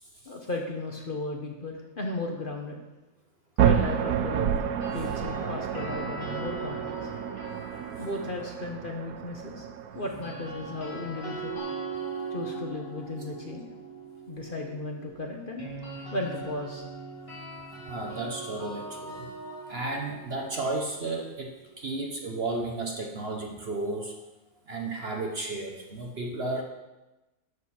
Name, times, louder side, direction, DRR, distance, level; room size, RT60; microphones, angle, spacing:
voice 1, 0.2-2.8 3.6-4.6 4.9-7.1 8.0-9.7 9.9-11.6 12.3-13.7 14.3-15.6 16.1-16.8, left 2 dB, 35° left, 1 dB, 1.0 m, -35 dB
sound 1, 3.6-11.6, right 8 dB, 70° right, 0.9 m, -30 dB
sound 2, 4.6-8.8 10.0-21.9, right 3 dB, 20° left, 2.8 m, -40 dB
voice 2, 17.8-19.3 19.7-24.1 24.7-26.6, right 2 dB, 45° right, 2 dB, 0.9 m, -33 dB
11.5 x 6.7 x 4.3 m, 1.1 s
omnidirectional pair, 1.9 m